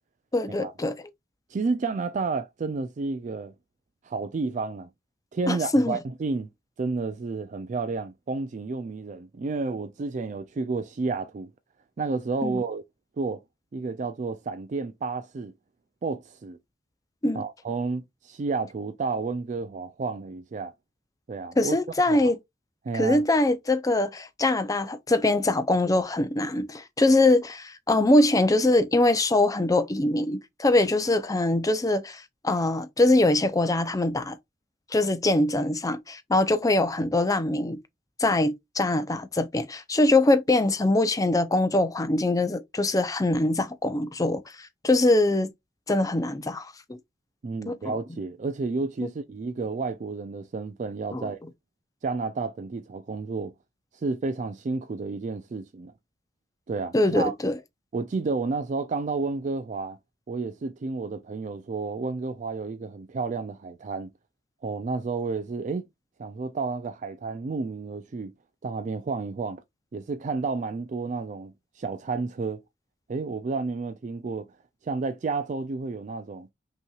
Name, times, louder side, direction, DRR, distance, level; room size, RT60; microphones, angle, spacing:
voice 1, 0.3-0.9 5.5-6.0 12.4-12.6 17.2-17.4 21.6-22.4 22.9-34.4 34.9-37.8 38.2-45.5 45.9-47.0 47.7-47.8 51.1-51.3 56.9-57.6, left 2 dB, 20° left, 0.5 m, -23 dB
voice 2, 1.5-3.5 4.0-4.9 5.3-6.5 6.8-11.5 12.0-12.8 13.2-13.4 13.7-15.5 16.0-16.6 17.3-20.7 21.3-21.8 22.1-22.3 22.8-23.2 47.4-51.4 52.0-53.5 53.9-55.9 56.7-57.3 57.9-60.0 60.3-64.1 64.6-65.8 66.2-68.3 68.6-69.6 69.9-72.6 73.1-74.5 74.8-76.5, right 4 dB, 40° right, 0.4 m, -31 dB
5.5 x 2.9 x 2.3 m
head